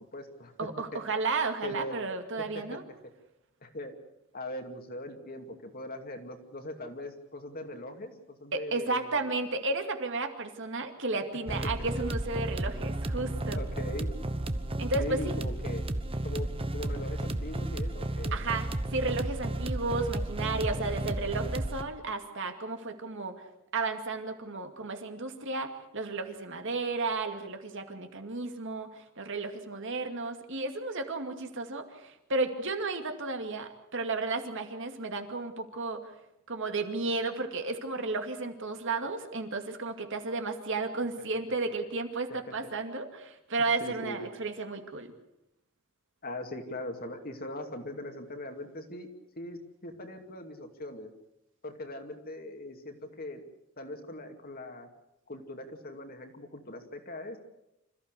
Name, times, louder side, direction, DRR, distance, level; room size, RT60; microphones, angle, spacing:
voice 1, 0.0-0.5 0.9-1.0 1.6-2.0 2.4-2.8 3.6-3.9 4.3-9.3 11.6-11.7 13.1-14.1 15.0-15.9 16.2-18.4 43.8-44.3 46.2-49.1 49.4-51.1 51.6-53.4 53.8-54.9 55.3-57.4, left 1 dB, 40° left, 5 dB, 2.5 m, -41 dB
voice 2, 0.6-2.8 8.5-13.6 14.8-15.3 18.3-23.4 23.7-36.1 36.5-45.1, right 3 dB, 60° right, 6 dB, 2.3 m, -33 dB
sound 1, 11.5-21.8, right 1 dB, 25° right, 1.1 m, -33 dB
26.5 x 14.5 x 8.3 m, 0.87 s
head